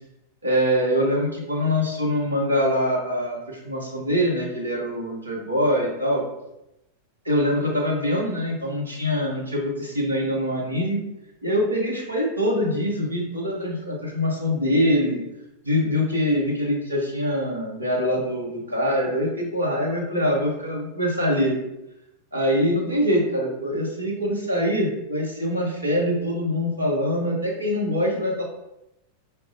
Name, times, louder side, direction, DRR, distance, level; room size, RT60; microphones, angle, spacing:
voice 1, 0.4-6.2 7.2-11.0 11.4-15.2 15.6-21.5 22.3-28.4, equal, 80° right, -2 dB, 0.9 m, -24 dB
4.8 x 2.2 x 2.6 m, 0.89 s
figure-of-eight pair, 90°, 0 cm